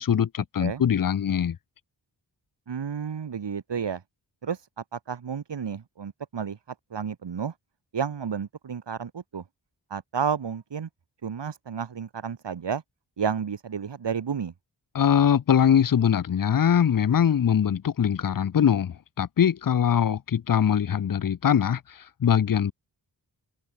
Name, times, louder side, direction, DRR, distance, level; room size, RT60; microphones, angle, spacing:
voice 1, 0.0-1.6 14.9-22.7, left 8 dB, 50° left, 0.7 m, -22 dB
voice 2, 2.7-4.0 4.4-6.6 6.9-7.5 7.9-9.4 9.9-10.9 11.2-12.8 13.2-14.5, right 7 dB, 75° right, 1.7 m, -31 dB
open air
wide cardioid pair, 60°, 43 cm